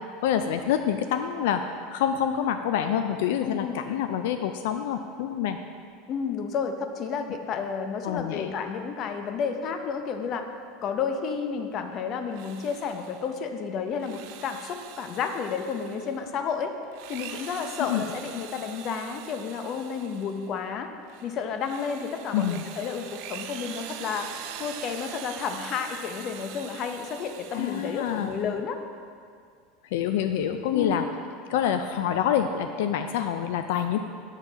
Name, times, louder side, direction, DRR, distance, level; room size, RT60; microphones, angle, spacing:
voice 1, 0.2-1.6 1.9-5.6 8.0-8.5 17.8-18.0 22.3-22.6 27.5-28.4 29.9-31.0 31.5-34.0, left 9 dB, 80° left, 8 dB, 0.3 m, -26 dB
voice 2, 3.4-3.8 6.1-10.5 10.8-16.7 17.1-20.9 21.2-24.3 24.6-28.8 30.7-31.1, left 6 dB, 40° left, 6 dB, 0.6 m, -31 dB
Drill, 12.2-13.4 13.9-16.3 16.8-20.5 21.0-28.5, right 10 dB, 65° right, 0.5 m, -43 dB
7.3 x 7.2 x 3.9 m, 2.2 s
supercardioid pair, 135°, 0 cm